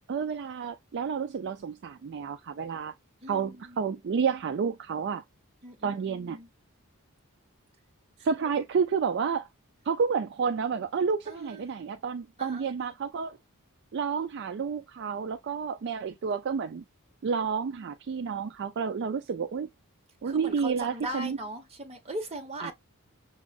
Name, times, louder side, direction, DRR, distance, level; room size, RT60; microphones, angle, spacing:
voice 1, 0.1-2.9 3.3-5.2 5.8-6.4 8.2-9.5 9.9-13.4 13.9-16.8 17.2-19.7 20.2-21.4 22.6-22.7, right 6 dB, 50° right, 0.3 m, -30 dB
voice 2, 3.2-3.9 5.6-6.5 11.3-11.6 12.4-12.7 20.2-22.7, right 1 dB, 30° right, 1.0 m, -39 dB
6.1 x 2.4 x 2.3 m
head